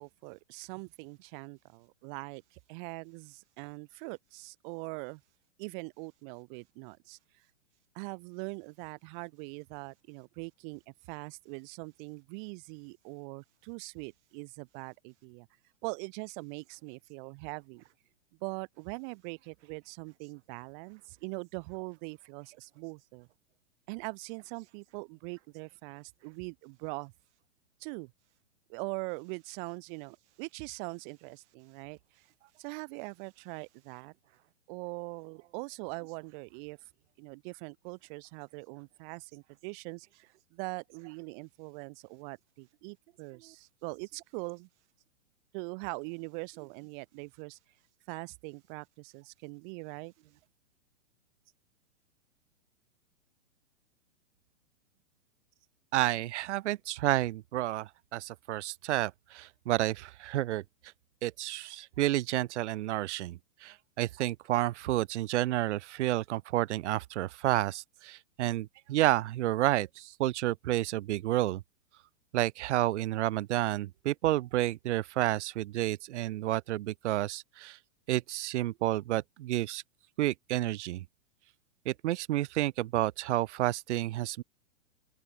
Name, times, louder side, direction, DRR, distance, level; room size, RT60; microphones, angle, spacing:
voice 1, 0.0-5.2 5.6-7.4 7.9-15.5 15.8-17.8 18.4-23.3 23.9-27.1 27.8-28.1 28.7-32.0 32.6-34.1 34.7-36.8 37.2-44.7 45.5-47.6 48.1-50.1, right 33 dB, 40° right, 2.8 m, -42 dB
voice 2, 55.9-60.6 61.2-71.6 72.3-77.8 78.1-79.8 80.2-81.0 81.9-84.4, right 15 dB, 60° right, 0.7 m, -30 dB
open air
hypercardioid pair, 145°, 40 cm